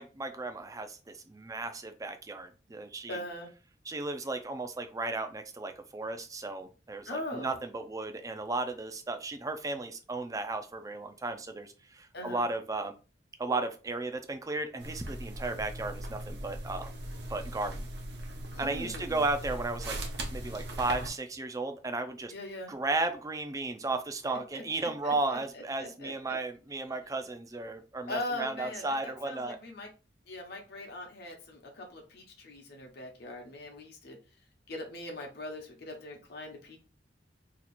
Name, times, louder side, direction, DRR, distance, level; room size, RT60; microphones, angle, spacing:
voice 1, 0.0-3.2 3.9-12.9 13.4-16.9 17.3-17.9 18.6-20.0 20.3-22.3 22.7-29.6, right 2 dB, 20° right, 7 dB, 0.4 m, -34 dB
voice 2, 3.1-3.5 7.1-7.6 12.1-12.5 18.5-19.2 22.3-22.7 24.3-26.4 28.1-29.9 30.3-34.2 34.7-36.8, left 1 dB, 60° left, 1 dB, 0.9 m, -41 dB
sound 1, 14.8-21.1, right 1 dB, 65° right, 0.7 m, -39 dB
2.9 x 2.4 x 4.1 m, 0.33 s
head